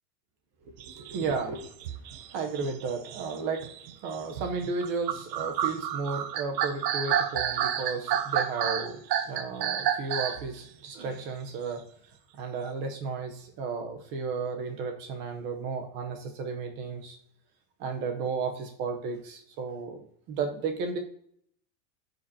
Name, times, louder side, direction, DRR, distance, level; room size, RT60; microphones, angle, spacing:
voice 1, 0.7-2.0 2.3-3.7 4.0-11.8 12.3-17.2 17.8-21.0, right 4 dB, 25° right, 4 dB, 0.8 m, -34 dB
sound 1, 0.8-10.5, right 9 dB, 85° right, 1.0 m, -30 dB
13.0 x 5.3 x 2.8 m, 0.66 s
supercardioid pair, 175°, 49 cm